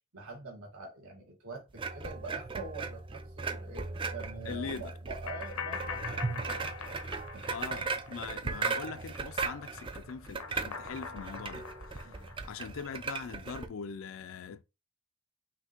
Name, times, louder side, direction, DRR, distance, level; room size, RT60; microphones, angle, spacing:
voice 1, 0.1-7.0 7.3-7.6 12.0-12.3, right 3 dB, 80° right, 1.7 m, -45 dB
sound 1, 1.7-13.7, right 4 dB, 25° right, 0.3 m, -37 dB
voice 2, 4.5-4.9 7.5-12.1 12.4-14.6, left 6 dB, 65° left, 0.4 m, -42 dB
sound 2, 5.3-8.7 9.0-13.0, left 6 dB, 85° left, 0.8 m, -43 dB
5.7 x 2.7 x 3.0 m
head